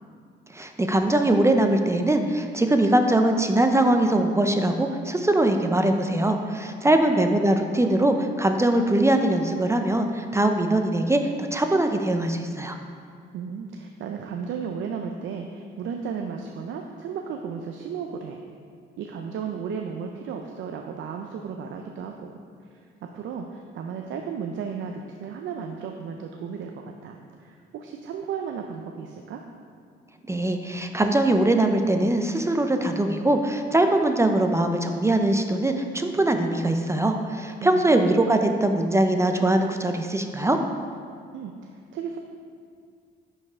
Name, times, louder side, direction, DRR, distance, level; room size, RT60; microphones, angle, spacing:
voice 1, 0.5-12.8 30.3-40.6, right 1 dB, 15° right, 5 dB, 0.5 m, -22 dB
voice 2, 6.8-7.2 13.3-18.4 19.0-22.4 22.7-29.4 37.6-38.2 41.3-42.2, right 6 dB, 75° right, 3 dB, 0.5 m, -34 dB
9.2 x 5.5 x 3.5 m, 2.3 s
cardioid pair, 90°, 20 cm